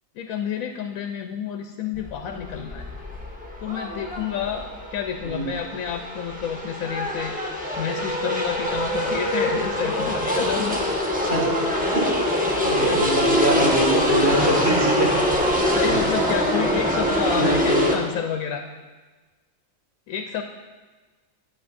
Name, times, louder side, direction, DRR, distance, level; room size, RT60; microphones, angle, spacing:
voice 1, 0.2-2.9 3.6-7.3 7.8-10.8 12.8-13.1 15.7-18.6 20.1-20.4, left 8 dB, 85° left, 5 dB, 1.1 m, -29 dB
sound 1, 1.9-17.9, equal, 5° right, 1.1 m, -24 dB
voice 2, 12.6-15.1 15.5-16.0 17.4-17.9, right 1 dB, 50° right, -3 dB, 2.4 m, -24 dB
12.0 x 9.1 x 2.6 m, 1.3 s
omnidirectional pair, 1.4 m